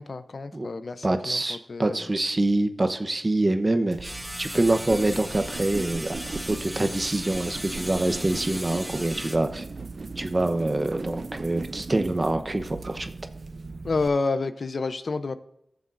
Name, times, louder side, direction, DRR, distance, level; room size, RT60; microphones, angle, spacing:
voice 1, 0.0-2.1 13.8-15.4, left 3 dB, 65° left, 12 dB, 0.6 m, -29 dB
voice 2, 1.0-6.2 6.5-9.6 10.2-13.1, right 2 dB, 35° right, 7 dB, 0.9 m, -25 dB
sound 1, 3.9-14.1, right 3 dB, 60° right, 0.4 m, -38 dB
sound 2, 4.0-9.4, equal, ahead, 1.5 m, -37 dB
15.5 x 7.0 x 2.6 m, 0.78 s
cardioid pair, 50°, 0 cm